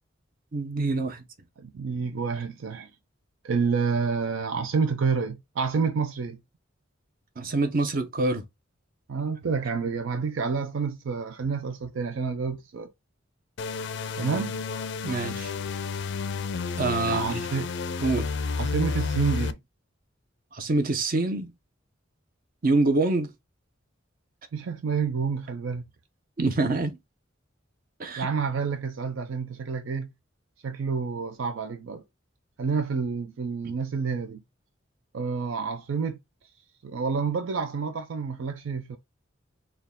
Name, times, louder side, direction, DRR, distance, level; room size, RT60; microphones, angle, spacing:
voice 1, 0.5-1.2 7.4-8.4 15.0-15.5 16.8-17.4 18.0-18.3 20.5-21.5 22.6-23.3 26.4-27.0 28.0-28.3 33.6-33.7, right 3 dB, 45° right, 0.8 m, -26 dB
voice 2, 1.6-2.9 3.4-6.4 9.1-12.9 14.2-14.6 17.1-17.8 18.6-19.6 24.5-25.8 28.2-30.1 30.6-32.0 32.6-34.4 35.1-36.2 36.8-39.0, right 5 dB, 75° right, 0.4 m, -29 dB
sound 1, 13.6-19.5, left 4 dB, 60° left, 0.4 m, -31 dB
4.2 x 2.3 x 3.5 m
head